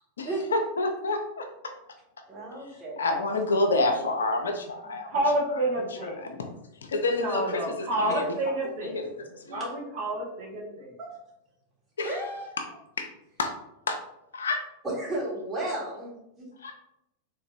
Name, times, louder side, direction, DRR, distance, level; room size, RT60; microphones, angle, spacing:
voice 1, 0.2-1.5 3.0-5.1 5.5-5.7 6.2-6.5 6.8-8.4 8.8-9.6 12.0-12.2 12.6-12.7 13.0-13.1 13.4-13.5 13.9-14.0 14.3-14.6 16.6-16.7, left 2 dB, 70° left, 4 dB, 0.4 m, -28 dB
voice 2, 2.3-3.0 8.1-8.2 11.0-11.1 12.0-12.6 14.8-16.1, right 1 dB, 20° right, -5 dB, 1.5 m, -33 dB
voice 3, 5.1-6.3 7.2-9.0 9.5-11.0, right 1 dB, 50° right, -3 dB, 1.2 m, -29 dB
3.5 x 2.9 x 2.5 m, 0.82 s
figure-of-eight pair, 90°, 0 cm